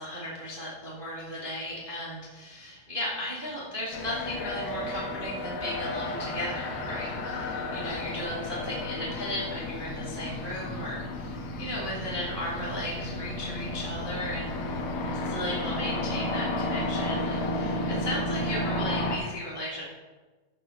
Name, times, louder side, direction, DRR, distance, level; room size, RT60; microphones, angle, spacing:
voice 1, 0.0-14.5 15.2-19.8, left 1 dB, 25° right, -5 dB, 1.2 m, -35 dB
sound 1, 3.9-19.2, left 1 dB, 80° left, 3.1 m, -32 dB
13.0 x 5.5 x 5.7 m, 1.3 s
omnidirectional pair, 4.3 m